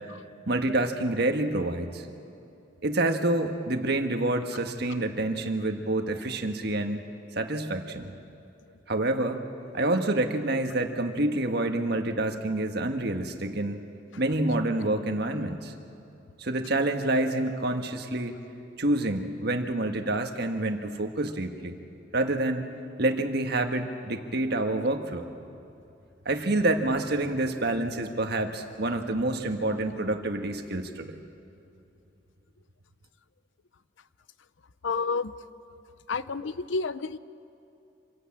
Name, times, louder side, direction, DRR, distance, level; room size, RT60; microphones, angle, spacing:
voice 1, 0.5-2.1 2.8-7.0 7.3-8.1 8.9-9.4 9.7-13.8 14.2-15.7 16.4-18.3 18.8-21.7 22.1-22.6 23.0-25.3 26.2-31.1, right 2 dB, 60° right, 6 dB, 1.5 m, -27 dB
voice 2, 34.8-35.3 36.1-37.2, left 4 dB, 80° left, 15 dB, 0.6 m, -29 dB
26.5 x 16.5 x 8.7 m, 2.7 s
head